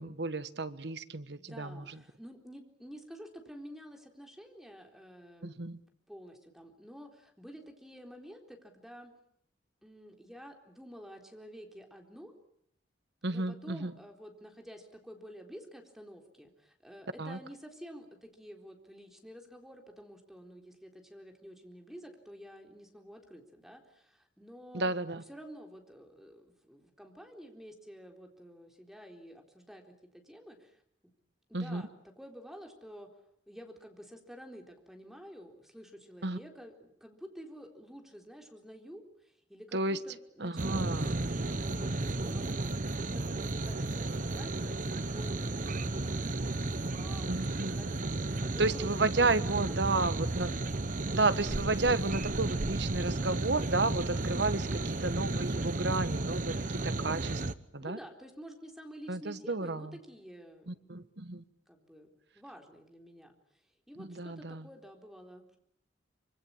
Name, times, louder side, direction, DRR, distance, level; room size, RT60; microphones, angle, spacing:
voice 1, 0.0-1.8 5.4-5.8 13.2-13.9 17.2-17.4 24.7-25.2 31.5-31.8 36.2-36.4 39.7-40.0 40.4-41.1 47.3-48.2 48.6-50.5 51.1-54.6 55.0-56.5 56.8-57.4 57.7-58.0 59.1-59.9 60.7-61.4 64.0-64.6, right 3 dB, 65° right, 13 dB, 1.4 m, -32 dB
voice 2, 1.3-5.7 6.1-9.1 9.8-12.3 13.3-30.8 31.5-33.1 33.5-50.1 57.8-61.1 61.7-62.1 62.3-63.6 63.9-65.6, equal, ahead, 3 dB, 4.0 m, -50 dB
sound 1, 40.6-57.5, right 2 dB, 45° right, 1.1 m, -33 dB
25.5 x 25.5 x 8.9 m, 0.70 s
head